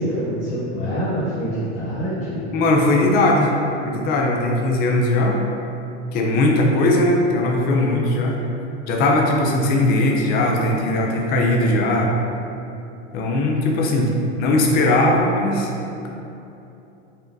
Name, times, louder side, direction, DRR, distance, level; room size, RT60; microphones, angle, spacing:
voice 1, 0.0-2.5, equal, 50° left, -11 dB, 1.4 m, -25 dB
voice 2, 2.5-3.5 3.8-5.4 6.1-8.3 8.9-12.1 13.1-14.1 14.4-15.7, left 1 dB, 30° left, 0 dB, 0.5 m, -19 dB
5.2 x 3.5 x 2.6 m, 2.8 s
supercardioid pair, 150°, 34 cm